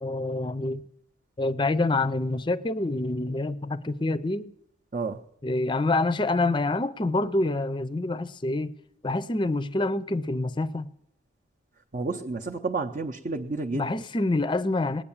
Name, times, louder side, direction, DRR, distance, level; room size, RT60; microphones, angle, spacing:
voice 1, 0.0-0.8 1.4-4.5 5.4-8.7 9.0-10.9 13.7-15.0, left 2 dB, 25° left, 0.5 m, -26 dB
voice 2, 11.9-13.9, right 3 dB, 40° right, 0.7 m, -30 dB
19.5 x 9.8 x 7.2 m
head